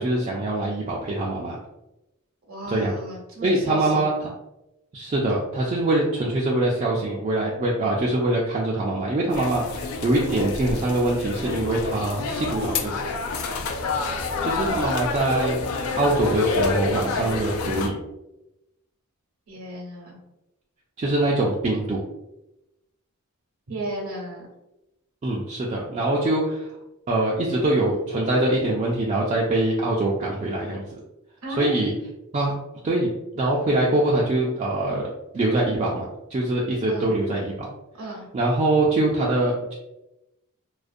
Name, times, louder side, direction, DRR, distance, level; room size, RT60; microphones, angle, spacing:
voice 1, 0.0-1.6 2.7-2.9 3.4-4.3 4.9-12.9 14.4-18.0 21.0-22.0 25.2-26.7 27.1-30.8 31.6-31.9 32.3-32.5 32.8-33.1 33.3-37.7 38.3-39.7, right 2 dB, 35° right, -4 dB, 0.3 m, -23 dB
voice 2, 2.5-4.1 13.5-13.6 19.5-20.2 23.7-24.5 31.4-31.7 36.9-37.1 38.0-38.3, right 1 dB, 70° right, -2 dB, 0.7 m, -34 dB
sound 1, 9.3-17.9, left 4 dB, 70° left, 0.3 m, -28 dB
2.4 x 2.1 x 2.5 m, 0.92 s
head